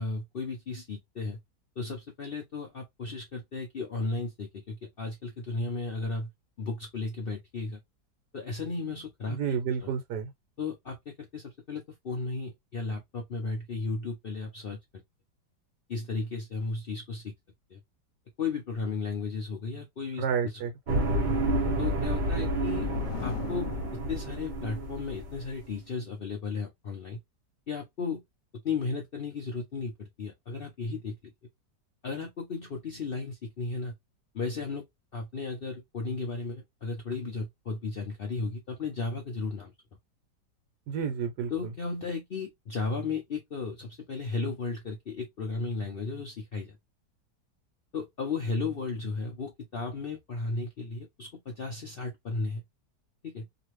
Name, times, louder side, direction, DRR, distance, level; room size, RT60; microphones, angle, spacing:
voice 1, 0.0-1.4 1.8-6.3 6.6-7.8 8.3-9.6 10.6-15.0 15.9-17.3 17.7-17.8 18.4-20.5 21.8-22.9 23.2-27.2 27.7-28.2 28.6-31.3 32.0-33.9 34.3-34.8 35.1-39.7 41.5-46.8 47.9-52.6 53.2-53.5, left 4 dB, 65° left, 0.5 m, -35 dB
voice 2, 9.3-10.3 20.2-21.0 40.9-41.7, right 7 dB, 75° right, 1.3 m, -31 dB
sound 1, 20.9-25.6, right 1 dB, 40° right, 0.7 m, -29 dB
sound 2, 22.1-24.7, left 7 dB, 85° left, 1.2 m, -42 dB
2.9 x 2.5 x 3.0 m
omnidirectional pair, 1.8 m